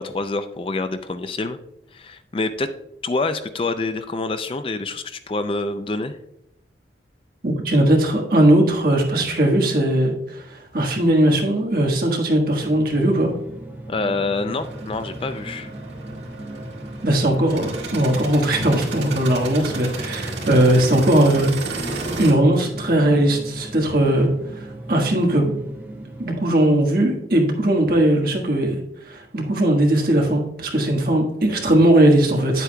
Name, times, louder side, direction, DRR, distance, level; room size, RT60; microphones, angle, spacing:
voice 1, 0.0-1.6 1.9-2.7 3.0-6.2 13.9-15.7, left 3 dB, 30° left, 10 dB, 0.4 m, -26 dB
voice 2, 7.4-13.3 17.0-24.3 24.9-25.5 26.2-28.8 29.1-32.6, right 1 dB, 55° right, 1 dB, 1.5 m, -19 dB
sound 1, 12.6-26.4, right 1 dB, 10° right, 1.8 m, -37 dB
sound 2, 14.6-22.3, right 2 dB, 80° right, 2.0 m, -32 dB
9.2 x 8.1 x 2.2 m, 0.80 s
head